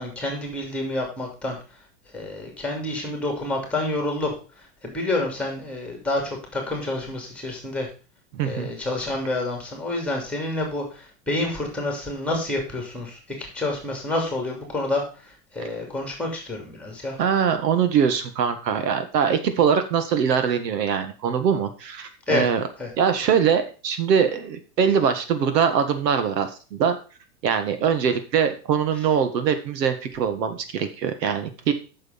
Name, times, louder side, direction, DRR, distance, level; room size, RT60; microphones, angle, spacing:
voice 1, 0.0-1.6 2.1-7.9 8.4-17.2 22.3-22.5 22.8-22.9, left 2 dB, ahead, 2 dB, 2.7 m, -28 dB
voice 2, 8.3-8.7 17.2-22.6 23.0-27.0 27.4-31.7, right 7 dB, 80° right, 9 dB, 1.8 m, -22 dB
8.5 x 6.7 x 5.8 m, 0.35 s
supercardioid pair, 155°, 49 cm